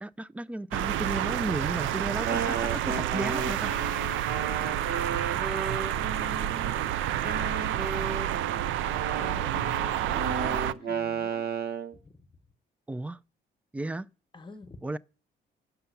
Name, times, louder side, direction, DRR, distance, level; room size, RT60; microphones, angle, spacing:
voice 1, 0.0-3.7 12.9-13.2 13.7-14.1 14.8-15.0, right 2 dB, 5° right, 0.3 m, -34 dB
sound 1, 0.7-10.7, right 11 dB, 80° right, 0.4 m, -29 dB
Wind instrument woodwind instrument, 2.2-6.8 7.2-11.9, right 5 dB, 55° right, 0.8 m, -34 dB
voice 2, 4.2-8.8 9.2-11.5 11.9-12.4 14.3-14.8, left 3 dB, 25° left, 1.1 m, -50 dB
7.0 x 5.7 x 6.6 m
cardioid pair, 90°, 20 cm